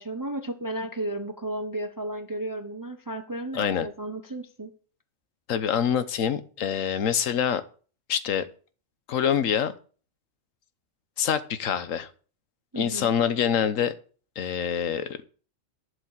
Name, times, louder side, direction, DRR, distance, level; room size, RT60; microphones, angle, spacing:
voice 1, 0.0-4.7 12.7-13.1, right 1 dB, 20° right, 7 dB, 0.7 m, -33 dB
voice 2, 3.5-3.9 5.5-7.6 8.1-8.5 9.1-9.8 11.2-12.1 12.8-13.9 14.4-15.2, left 8 dB, 85° left, 13 dB, 1.3 m, -25 dB
11.5 x 5.0 x 7.4 m, 0.41 s
omnidirectional pair, 1.3 m